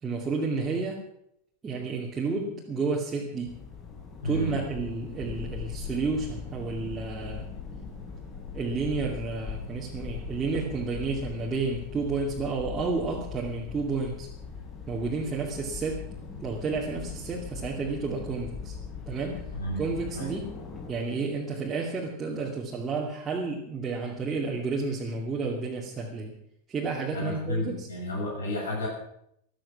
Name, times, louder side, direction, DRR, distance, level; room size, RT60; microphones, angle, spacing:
voice 1, 0.0-1.0 1.6-3.6 4.2-7.5 8.5-14.3 14.9-16.0 16.4-18.7 19.1-19.4 19.8-20.5 20.9-26.4 26.7-27.9, right 4 dB, 20° right, -4 dB, 2.5 m, -31 dB
sound 1, 3.4-20.9, left 6 dB, 25° left, 6.6 m, -40 dB
voice 2, 4.2-4.5 19.5-20.3 27.1-28.9, left 1 dB, 70° left, -1 dB, 7.0 m, -32 dB
15.0 x 13.0 x 6.0 m, 0.75 s
figure-of-eight pair, 90°, 0 cm